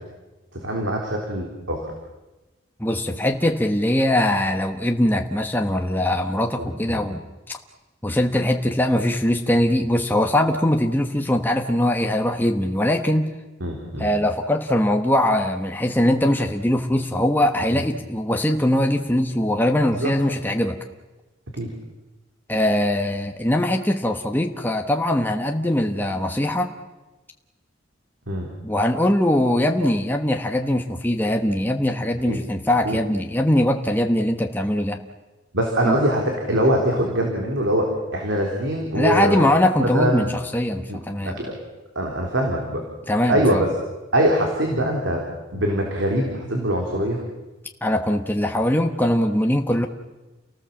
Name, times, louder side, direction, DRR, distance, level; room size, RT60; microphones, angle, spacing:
voice 1, 0.5-1.9 6.6-7.0 13.6-14.1 19.9-20.1 21.5-21.7 28.3-28.5 32.3-32.4 32.8-33.0 35.5-39.4 39.8-40.2 40.9-41.0 41.2-41.6 42.0-42.8 43.3-43.7 44.1-45.2 45.5-47.2, right 1 dB, 70° right, 1 dB, 3.8 m, -23 dB
voice 2, 2.8-7.2 7.5-7.6 8.0-13.3 14.0-20.8 22.5-26.7 28.6-35.0 35.8-36.0 38.9-41.5 43.1-43.6 47.8-49.9, left 1 dB, 10° left, 3 dB, 1.1 m, -21 dB
30.0 x 18.5 x 7.4 m, 1.1 s
head